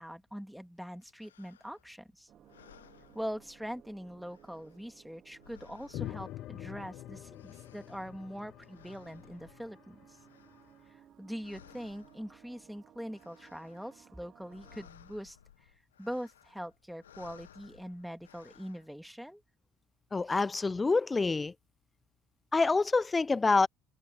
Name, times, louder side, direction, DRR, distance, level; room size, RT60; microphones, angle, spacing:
voice 1, 0.0-2.3 3.1-10.2 10.9-15.4 16.0-19.4 20.3-20.4, equal, ahead, 2.3 m, -42 dB
sound 1, 1.0-2.0 2.4-4.0 4.2-6.9 7.1-11.1 11.4-12.7 13.0-14.1 14.3-18.9, left 10 dB, 90° left, 1.0 m, -60 dB
sound 2, 2.3-14.9, right 10 dB, 50° right, 2.6 m, -61 dB
sound 3, 5.9-10.6, left 14 dB, 60° left, 0.9 m, -45 dB
voice 2, 20.1-21.5 22.5-23.7, left 3 dB, 20° left, 0.3 m, -26 dB
hypercardioid pair, 65°, 0 cm